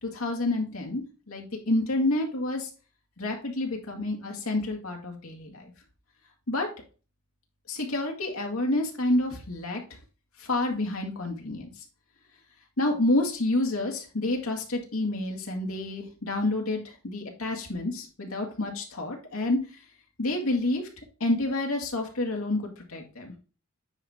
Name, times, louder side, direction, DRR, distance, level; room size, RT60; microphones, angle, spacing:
voice 1, 0.0-2.7 3.2-5.7 6.5-6.7 7.7-9.8 10.4-11.7 12.8-19.6 20.2-20.8 21.2-22.6 22.9-23.3, left 2 dB, 80° left, 2 dB, 2.2 m, -28 dB
9.5 x 4.4 x 3.6 m, 0.35 s
head